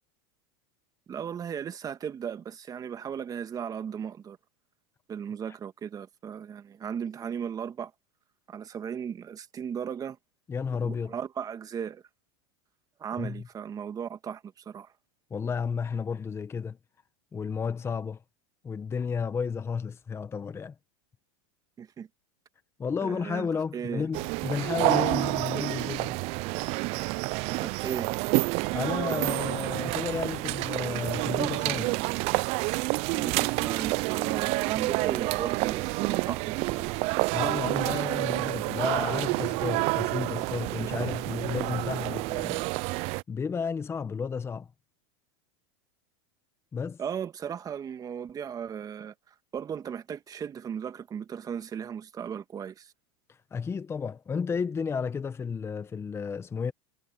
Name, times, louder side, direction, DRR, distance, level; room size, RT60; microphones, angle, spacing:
voice 1, 1.1-4.4 5.1-7.9 8.5-10.2 10.8-12.0 13.0-14.9 21.8-22.1 23.0-24.1 27.6-28.1 33.1-36.9 47.0-52.9, right 8 dB, 25° right, 1.8 m, -36 dB
voice 2, 10.5-11.1 13.2-13.4 15.3-16.8 17.3-18.2 18.6-20.7 22.8-26.2 28.7-32.0 37.3-42.6 43.3-44.7 46.7-47.0 53.5-56.7, left 6 dB, 20° left, 1.2 m, -32 dB
sound 1, 24.1-43.2, right 25 dB, 45° right, 0.4 m, -28 dB
supercardioid pair, 120°, 14 cm